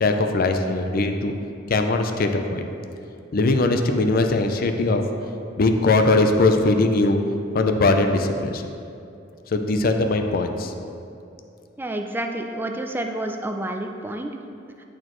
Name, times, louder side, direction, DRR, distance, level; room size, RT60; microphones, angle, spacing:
voice 1, 0.0-1.3 1.7-2.7 3.3-5.0 5.6-7.2 7.5-8.6 9.5-10.7, left 2 dB, 50° left, 6 dB, 0.5 m, -20 dB
voice 2, 11.8-14.3, right 1 dB, 10° right, 4 dB, 0.4 m, -29 dB
10.5 x 4.3 x 3.1 m, 2.6 s
head